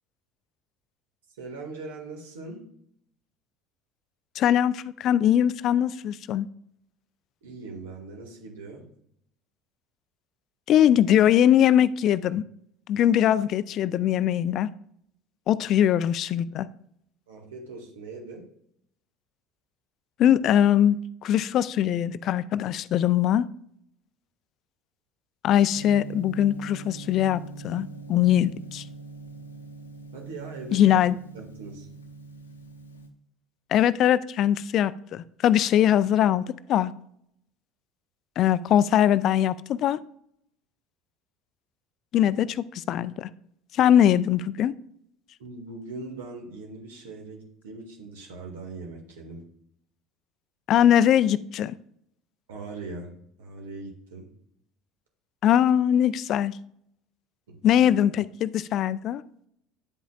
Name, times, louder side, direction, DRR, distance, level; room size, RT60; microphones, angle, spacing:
voice 1, 1.4-2.6 7.4-8.9 17.3-18.5 30.1-31.0 31.3-31.9 45.4-49.4 52.5-53.1 53.4-54.3 57.5-57.7, right 3 dB, 70° right, 1 dB, 2.0 m, -40 dB
voice 2, 4.4-6.5 10.7-12.4 12.9-14.7 15.5-16.7 20.2-23.5 25.4-28.8 30.7-31.2 33.7-36.4 36.7-36.9 38.4-40.0 42.1-43.3 43.7-44.7 50.7-51.7 55.4-56.5 57.6-59.2, left 10 dB, 50° left, 17 dB, 0.4 m, -21 dB
Gong, 25.7-33.1, right 2 dB, 85° left, 0.8 m, -43 dB
9.8 x 8.1 x 2.4 m, 0.70 s
figure-of-eight pair, 65°, 0 cm